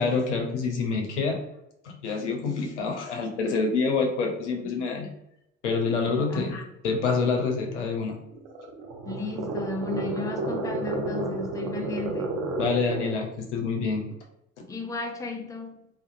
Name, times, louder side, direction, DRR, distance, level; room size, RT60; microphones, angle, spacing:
voice 1, 0.0-1.4 1.8-5.1 5.6-8.2 12.6-14.0, left 4 dB, 85° left, 0.7 m, -27 dB
voice 2, 6.3-6.6 9.0-12.4 14.1-14.2 14.7-15.9, left 4 dB, 10° left, 0.5 m, -35 dB
sound 1, 8.3-13.3, right 3 dB, 60° right, 0.8 m, -31 dB
2.6 x 2.6 x 2.5 m
hypercardioid pair, 60°, 34 cm